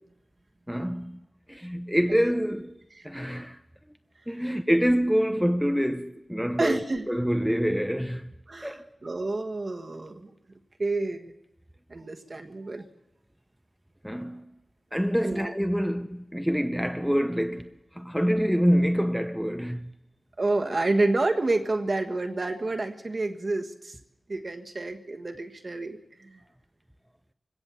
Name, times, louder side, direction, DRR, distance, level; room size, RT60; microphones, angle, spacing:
voice 1, 0.7-1.2 1.5-2.7 3.0-3.6 4.3-6.8 7.1-8.3 8.6-8.8 14.0-14.4 14.9-17.7 18.0-19.9, equal, ahead, 0.7 m, -26 dB
voice 2, 6.6-7.0 8.5-10.3 10.8-11.3 11.9-12.8 15.2-15.5 20.4-23.9 24.3-26.0 26.3-26.4, right 2 dB, 45° right, 1.4 m, -29 dB
22.5 x 17.0 x 7.1 m
wide cardioid pair, 80°, 0 cm